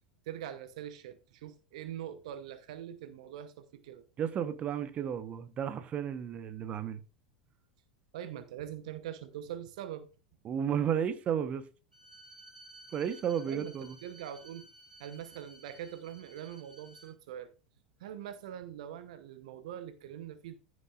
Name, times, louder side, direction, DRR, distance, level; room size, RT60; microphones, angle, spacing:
voice 1, 0.3-4.0 8.1-10.1 13.5-13.7 14.0-14.7 15.0-17.5 18.0-20.6, right 10 dB, 60° right, 0.9 m, -43 dB
voice 2, 4.2-7.0 10.4-11.7 12.9-14.0, right 8 dB, 35° right, 1.0 m, -33 dB
Bowed string instrument, 11.9-17.1, right 1 dB, 90° right, 2.4 m, -55 dB
15.0 x 6.4 x 2.5 m
figure-of-eight pair, 85°, 4 cm